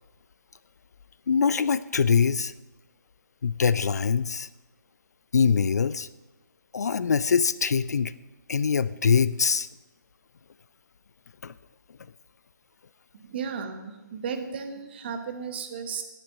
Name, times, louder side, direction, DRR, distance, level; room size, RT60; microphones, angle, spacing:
voice 1, 1.3-2.5 3.4-4.5 5.3-6.1 6.7-8.1 8.5-9.7 11.4-11.5, left 6 dB, 55° left, 17 dB, 0.4 m, -23 dB
voice 2, 13.3-16.0, right 6 dB, 30° right, 7 dB, 1.1 m, -34 dB
10.5 x 7.4 x 6.6 m, 1.1 s
figure-of-eight pair, 150°, 10 cm